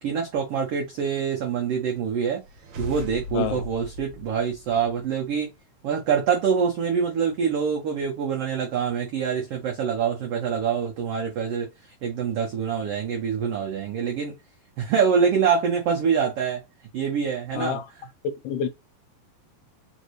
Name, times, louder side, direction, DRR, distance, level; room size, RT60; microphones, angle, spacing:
voice 1, 0.0-2.4 2.8-5.5 5.8-11.7 12.0-14.3 14.8-16.6 16.9-17.8, right 6 dB, 90° right, 1.3 m, -25 dB
sound 1, 2.4-5.2, left 2 dB, 65° right, 2.0 m, -39 dB
voice 2, 3.3-3.7 17.6-17.9 18.2-18.7, left 7 dB, 80° left, 2.3 m, -28 dB
5.1 x 2.7 x 3.0 m
omnidirectional pair, 3.9 m